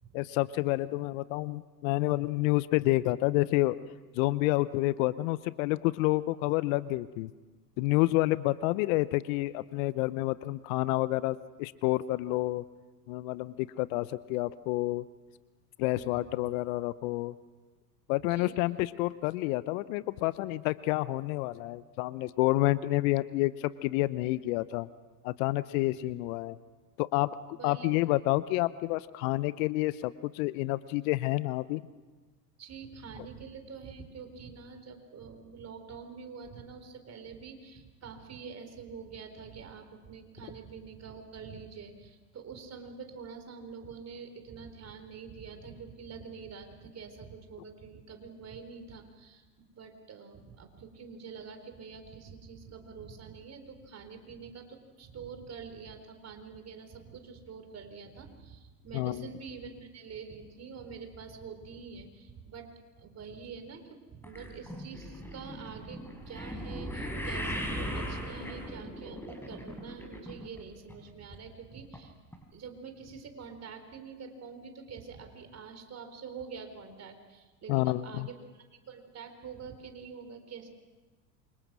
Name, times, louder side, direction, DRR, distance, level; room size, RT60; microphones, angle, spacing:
voice 1, 0.1-3.8 4.2-7.3 7.8-12.6 13.1-15.0 15.8-17.3 18.1-24.9 25.2-26.6 27.0-31.8 58.9-59.3 77.7-78.3, left 19 dB, 55° left, 17 dB, 0.9 m, -29 dB
voice 2, 15.9-16.5 18.3-18.6 26.1-26.2 27.6-27.9 32.6-49.5 49.7-62.7 63.0-72.1 72.5-80.7, right 5 dB, 30° right, 7 dB, 4.2 m, -46 dB
sound 1, 64.2-70.6 70.9-71.4 71.9-72.0 72.3-72.4, equal, 5° left, 5.6 m, -38 dB
28.0 x 25.0 x 6.2 m, 1.3 s
hypercardioid pair, 85°, 49 cm